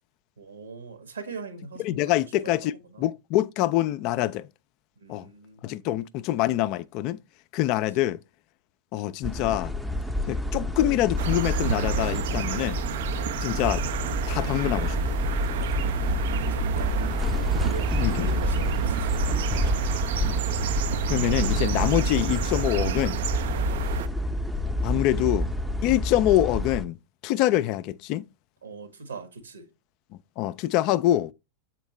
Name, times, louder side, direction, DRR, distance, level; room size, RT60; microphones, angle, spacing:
voice 1, 0.4-3.1 5.0-5.8 8.0-8.1 15.5-17.2 17.6-20.0 23.5-23.8 28.6-29.7, right 4 dB, 70° right, 1.3 m, -41 dB
voice 2, 1.8-2.7 3.0-4.5 5.1-5.3 5.6-7.2 7.5-8.2 8.9-9.7 10.3-12.8 13.4-13.8 14.3-15.0 18.0-18.3 20.2-20.4 21.1-23.2 24.8-25.5 25.8-27.0 27.2-28.2 30.4-31.3, left 14 dB, 40° left, 0.3 m, -25 dB
sound 1, 9.2-26.9, left 1 dB, ahead, 0.6 m, -28 dB
sound 2, 11.2-24.1, right 8 dB, 55° right, 0.4 m, -30 dB
7.0 x 4.5 x 3.2 m
figure-of-eight pair, 90°, 0 cm